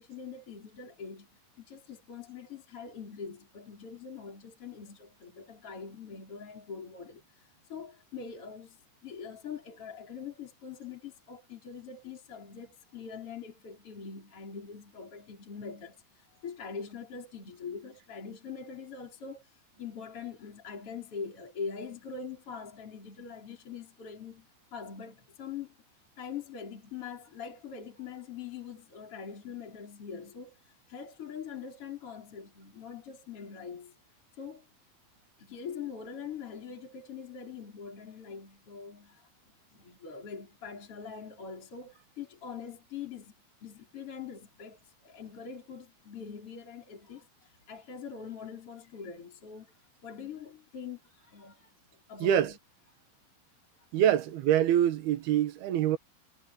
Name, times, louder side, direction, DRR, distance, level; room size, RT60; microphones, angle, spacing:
voice 1, 0.0-25.8 26.2-34.0 34.3-34.7 35.4-43.3 43.6-49.8 50.0-51.8 52.1-52.6 53.8-54.2, left 6 dB, 35° left, 5.3 m, -43 dB
voice 2, 53.9-56.0, right 11 dB, 85° right, 3.3 m, -25 dB
omnidirectional pair, 4.4 m